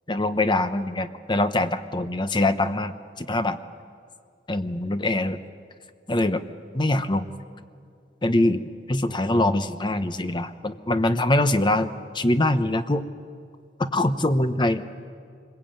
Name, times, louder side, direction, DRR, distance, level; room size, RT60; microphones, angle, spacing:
voice 1, 0.1-3.6 4.5-5.4 6.1-6.4 6.7-7.3 8.2-11.9 12.1-13.0 13.8-14.8, left 1 dB, 25° left, 10 dB, 0.9 m, -23 dB
24.5 x 21.5 x 8.9 m, 2.2 s
head